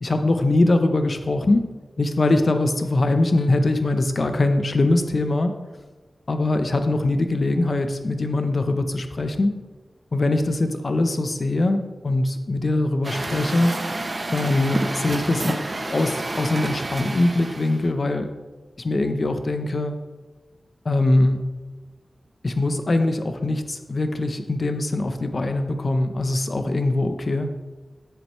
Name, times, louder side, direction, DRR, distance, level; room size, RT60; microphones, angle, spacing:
voice 1, 0.0-1.7 2.0-5.5 6.3-9.5 10.1-13.8 14.3-18.3 18.8-19.9 20.8-21.5 22.4-27.5, left 2 dB, 50° left, 7 dB, 0.8 m, -22 dB
Truck, 13.0-17.9, right 2 dB, 40° right, 0.9 m, -29 dB
9.7 x 7.9 x 3.2 m, 1.3 s
wide cardioid pair, 80°, 0 cm